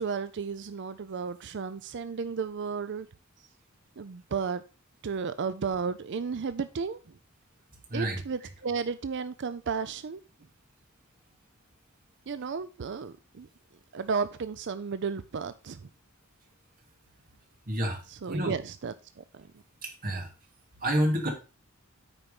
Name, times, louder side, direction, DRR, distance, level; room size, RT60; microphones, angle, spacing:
voice 1, 0.0-3.1 4.0-4.6 5.0-7.1 7.9-10.2 12.3-13.5 13.9-15.9 18.1-19.6, right 5 dB, 60° right, 0.5 m, -33 dB
voice 2, 17.7-18.0 18.3-18.5 19.8-20.3 20.8-21.3, equal, 40° right, 2.6 m, -28 dB
9.1 x 4.6 x 5.3 m
head